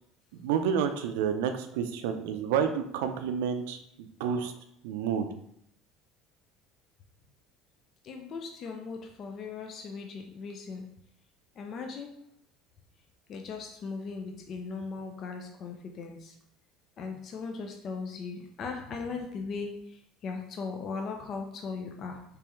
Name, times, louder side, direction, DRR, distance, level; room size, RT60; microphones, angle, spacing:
voice 1, 0.4-4.5 4.8-5.3, right 7 dB, 90° right, 8 dB, 0.4 m, -29 dB
voice 2, 8.0-10.9 11.6-12.2 13.3-16.3 17.0-20.0 20.2-22.2, left 4 dB, 45° left, 3 dB, 0.4 m, -38 dB
3.4 x 3.3 x 3.0 m, 0.72 s
supercardioid pair, 120°, 0 cm